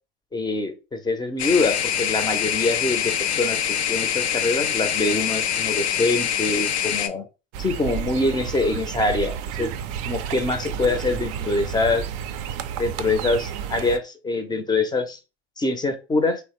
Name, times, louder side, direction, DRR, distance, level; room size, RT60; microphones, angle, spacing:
voice 1, 0.3-3.6 3.9-7.3 7.6-9.7 10.1-12.0 12.8-15.2 15.6-16.4, left 3 dB, 15° left, 8 dB, 0.5 m, -24 dB
sound 1, 1.4-7.1, left 9 dB, 85° left, 0.5 m, -24 dB
sound 2, 7.5-14.0, right 8 dB, 50° right, 0.4 m, -31 dB
3.0 x 2.1 x 2.9 m, 0.30 s
hypercardioid pair, 80°, 31 cm